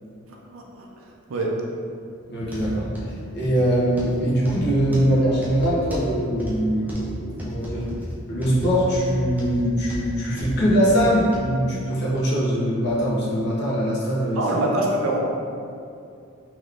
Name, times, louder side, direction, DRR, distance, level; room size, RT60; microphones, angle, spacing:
voice 1, 0.3-0.9 1.3-1.6 14.4-15.2, right 1 dB, 70° right, -1 dB, 0.5 m, -25 dB
voice 2, 2.3-2.9 3.3-7.8 8.3-14.4, equal, 50° left, -7 dB, 0.8 m, -22 dB
sound 1, 2.4-11.5 12.1-12.2 12.9-13.0, equal, 10° right, 0.4 m, -33 dB
3.4 x 3.0 x 2.4 m, 2.5 s
head